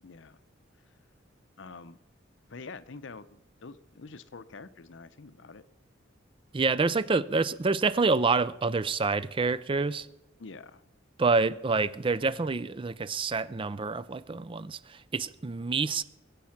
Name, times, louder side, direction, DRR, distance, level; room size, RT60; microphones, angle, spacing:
voice 1, 0.0-0.4 0.9-1.0 1.6-2.0 2.5-5.6 10.4-10.9, left 4 dB, 65° left, 0.7 m, -46 dB
voice 2, 6.5-10.1 11.2-16.0, right 4 dB, 25° right, 0.4 m, -27 dB
22.0 x 8.5 x 5.9 m
head